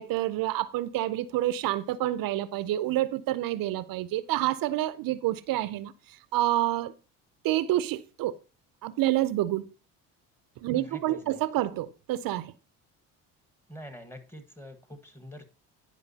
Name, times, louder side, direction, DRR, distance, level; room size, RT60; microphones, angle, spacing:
voice 1, 0.0-5.9 6.3-6.9 7.4-8.3 8.8-9.7 10.6-12.5, right 14 dB, 60° right, 0.6 m, -28 dB
voice 2, 10.7-11.4 13.7-15.5, equal, 5° left, 1.4 m, -45 dB
11.0 x 4.8 x 2.8 m
supercardioid pair, 75°, 38 cm